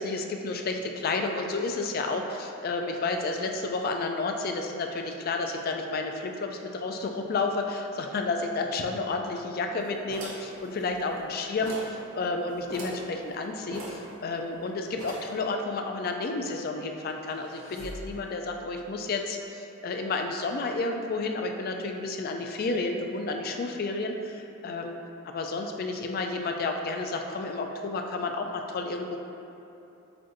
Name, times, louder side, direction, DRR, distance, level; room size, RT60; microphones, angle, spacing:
voice 1, 0.0-24.9 25.2-29.2, left 3 dB, 45° left, 4 dB, 0.3 m, -31 dB
sound 1, 10.1-11.3 11.6-12.0 12.3-12.4 12.7-13.1 13.7-14.6 15.0-15.4, right 1 dB, 85° right, 0.8 m, -40 dB
sound 2, 16.9-18.7, equal, 75° left, 0.9 m, -45 dB
7.6 x 2.5 x 2.6 m, 2.9 s
head